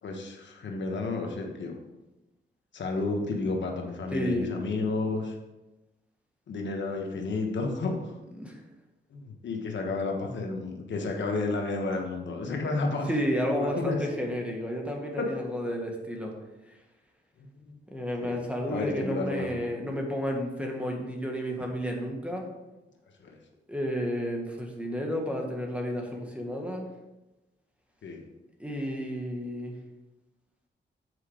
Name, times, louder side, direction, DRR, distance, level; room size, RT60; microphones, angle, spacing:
voice 1, 0.0-1.8 2.7-5.4 6.5-8.1 9.1-13.1 13.5-14.0 15.2-15.3 17.4-17.8 18.2-18.4 18.7-19.6 23.2-23.4 28.0-28.2, left 3 dB, 75° left, 2 dB, 1.3 m, -31 dB
voice 2, 4.1-4.5 8.4-8.6 13.1-16.3 17.9-22.5 23.7-26.9 28.6-29.7, equal, 5° right, 0 dB, 1.7 m, -31 dB
8.2 x 4.8 x 5.0 m, 1.0 s
cardioid pair, 85°, 19 cm